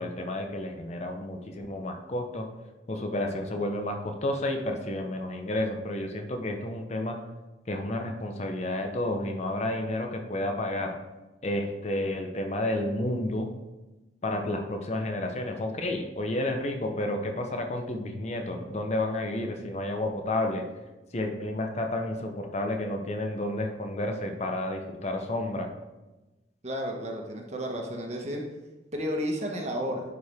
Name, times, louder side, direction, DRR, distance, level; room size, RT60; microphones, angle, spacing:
voice 1, 0.0-2.5 2.9-7.2 7.7-11.0 11.4-13.6 14.2-20.6 21.1-25.7, left 1 dB, 40° left, 4 dB, 0.7 m, -31 dB
voice 2, 26.6-28.4 28.9-30.0, equal, 40° right, 1 dB, 1.2 m, -32 dB
11.0 x 4.6 x 3.5 m, 1.1 s
head